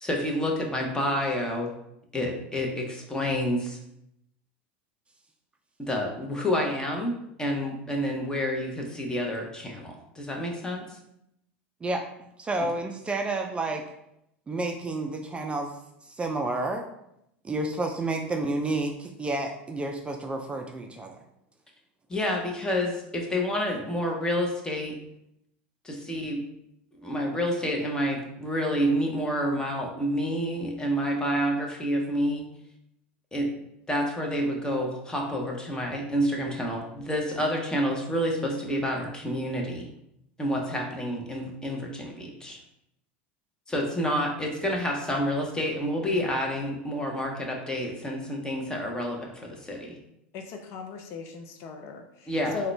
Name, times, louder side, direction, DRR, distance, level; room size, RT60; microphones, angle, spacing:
voice 1, 0.0-1.7 2.1-3.8 5.8-7.1 7.4-11.0 22.1-24.9 25.8-26.4 27.0-32.4 33.3-33.5 33.9-39.8 40.4-42.6 43.7-50.0 52.3-52.6, equal, 15° left, 0 dB, 0.8 m, -29 dB
voice 2, 12.4-13.8 14.5-15.7 16.1-16.9 17.4-21.2, right 2 dB, 20° right, 3 dB, 0.4 m, -30 dB
voice 3, 50.3-52.7, left 5 dB, 55° left, 5 dB, 0.5 m, -37 dB
3.6 x 2.2 x 3.2 m, 0.79 s
hypercardioid pair, 90°, 6 cm